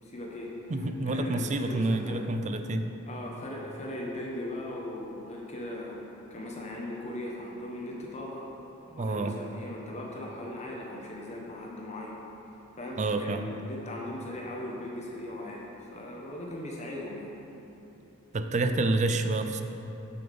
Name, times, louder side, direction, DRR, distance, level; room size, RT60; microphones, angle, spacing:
voice 1, 0.0-0.5 0.8-2.2 3.1-6.0 6.3-8.4 8.9-12.2 12.8-17.4 18.6-18.8, left 1 dB, 35° left, -2 dB, 0.9 m, -39 dB
voice 2, 0.7-2.9 9.0-9.4 13.0-13.5 18.3-19.6, right 2 dB, 35° right, 7 dB, 0.4 m, -28 dB
7.0 x 6.8 x 5.1 m, 2.9 s
head